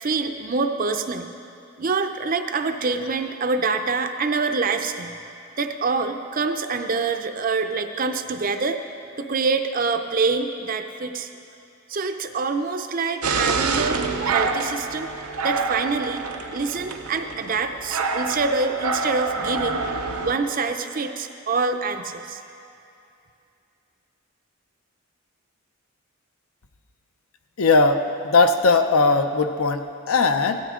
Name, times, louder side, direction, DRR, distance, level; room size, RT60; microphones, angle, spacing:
voice 1, 0.0-1.3 1.8-5.2 5.6-8.8 9.2-11.3 11.9-15.1 15.4-16.2 16.5-19.8 20.2-22.4, right 4 dB, 40° right, 7 dB, 0.5 m, -25 dB
sound 1, 13.2-20.3, right 4 dB, 90° right, 0.7 m, -27 dB
voice 2, 27.6-30.6, left 3 dB, 75° left, 7 dB, 0.7 m, -19 dB
16.0 x 12.5 x 3.7 m, 2.6 s
head